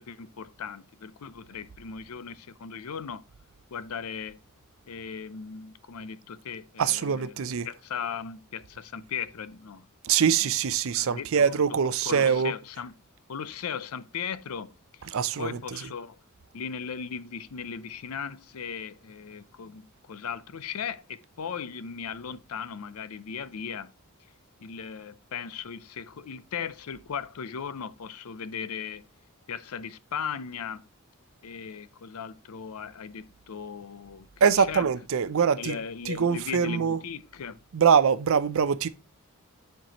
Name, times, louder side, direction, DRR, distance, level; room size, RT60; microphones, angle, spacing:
voice 1, 0.0-3.2 3.7-4.4 4.9-9.9 10.2-10.3 10.9-11.5 12.0-12.9 13.3-16.2 16.5-23.9 24.6-29.0 29.5-30.8 31.4-34.3 34.6-34.9 35.5-37.6, left 6 dB, 75° left, 0.5 m, -37 dB
voice 2, 6.8-7.7 10.0-12.5 15.1-15.8 34.4-35.8 36.1-37.0 37.7-38.9, right 7 dB, 65° right, 0.5 m, -23 dB
10.0 x 4.6 x 2.9 m
head